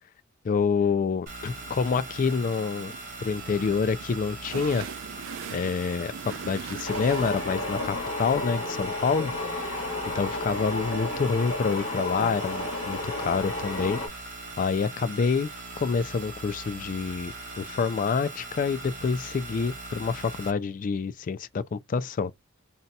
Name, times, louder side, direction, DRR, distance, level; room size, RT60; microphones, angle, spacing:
voice 1, 0.4-2.9 3.2-4.9 5.5-9.9 10.1-14.0 14.6-15.5 15.8-22.3, left 5 dB, 40° left, 0.3 m, -27 dB
sound 1, 1.3-20.5, right 2 dB, 40° right, 0.9 m, -40 dB
sound 2, 1.5-13.0, right 7 dB, 60° right, 0.4 m, -44 dB
sound 3, 6.8-14.1, left 2 dB, 65° left, 1.2 m, -32 dB
2.7 x 2.2 x 3.9 m
head